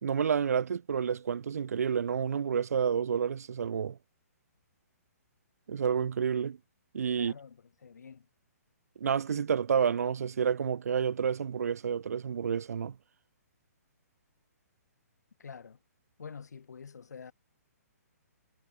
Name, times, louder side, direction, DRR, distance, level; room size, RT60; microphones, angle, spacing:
voice 1, 0.0-4.0 5.7-6.6 6.9-7.3 9.0-13.0, right 7 dB, 65° right, 0.6 m, -29 dB
voice 2, 7.1-8.3 15.4-15.8 16.2-17.3, left 6 dB, 90° left, 4.2 m, -47 dB
hypercardioid pair, 180°, 9 cm